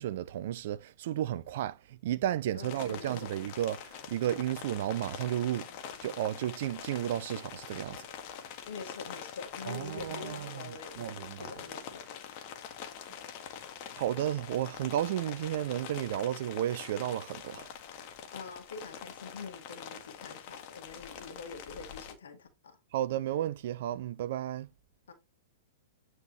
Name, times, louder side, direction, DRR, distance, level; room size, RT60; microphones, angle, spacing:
voice 1, 0.0-5.7 6.0-8.1 9.6-11.6 13.9-17.7 22.9-24.7, right 12 dB, 55° right, 0.8 m, -33 dB
voice 2, 2.5-3.3 8.6-12.1 18.3-22.8 25.1-25.2, left 5 dB, 70° left, 1.8 m, -45 dB
sound 1, 2.6-22.1, left 8 dB, 45° left, 1.7 m, -45 dB
9.5 x 4.7 x 3.2 m
figure-of-eight pair, 105°, 0 cm